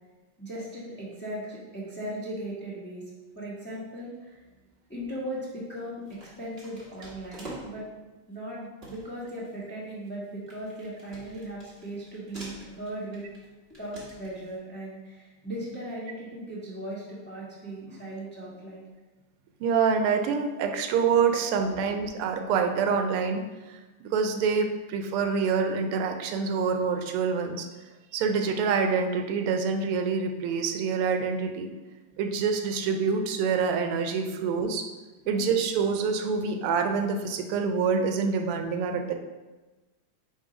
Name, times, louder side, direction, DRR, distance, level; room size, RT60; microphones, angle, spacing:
voice 1, 0.4-3.1 3.3-4.4 4.9-7.8 8.3-13.2 13.8-18.8 21.7-21.8 35.2-35.6, right 1 dB, 5° left, -7 dB, 0.9 m, -38 dB
sound 1, 5.0-5.3 6.0-8.0 8.4-8.5 8.8-14.6, right 2 dB, 30° right, 1.5 m, -47 dB
voice 2, 19.6-23.4 23.7-23.8 24.0-27.7 28.1-31.7 32.2-34.9 35.3-39.1, right 5 dB, 85° right, 5 dB, 1.5 m, -26 dB
7.2 x 2.7 x 5.0 m, 1.2 s
omnidirectional pair, 2.4 m